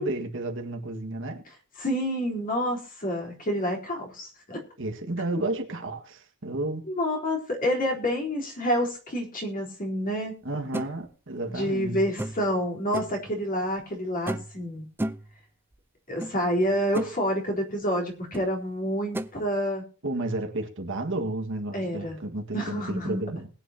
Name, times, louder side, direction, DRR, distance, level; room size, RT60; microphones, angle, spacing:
voice 1, 0.0-1.4 4.8-6.8 10.4-12.0 20.0-23.5, right 2 dB, 60° right, 1.8 m, -32 dB
voice 2, 1.8-4.6 7.0-10.3 11.4-14.8 16.1-19.9 21.7-22.2 22.5-23.2, equal, 40° left, 3.8 m, -28 dB
sound 1, 10.7-10.9 12.2-12.5 12.9-13.2 14.3-14.6 15.0-15.3 16.2-16.3 16.7-17.1 18.3-18.5 19.1-19.3, right 1 dB, 10° right, 0.5 m, -32 dB
20.5 x 9.3 x 2.9 m
head